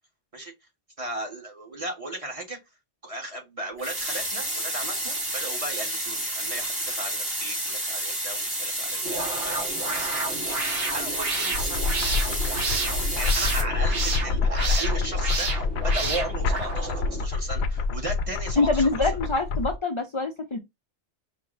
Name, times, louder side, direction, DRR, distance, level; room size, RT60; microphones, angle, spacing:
voice 1, 1.0-2.6 3.0-12.1 12.4-19.1, right 1 dB, 30° right, 1.3 m, -36 dB
sound 1, 3.8-13.6, right 1 dB, 75° right, 3.6 m, -30 dB
sound 2, 9.0-17.2, right 3 dB, 60° right, 1.0 m, -31 dB
sound 3, 11.5-19.8, left 4 dB, 70° left, 0.8 m, -27 dB
voice 2, 18.6-20.6, left 3 dB, 35° left, 0.5 m, -25 dB
5.2 x 2.1 x 3.8 m
omnidirectional pair, 1.2 m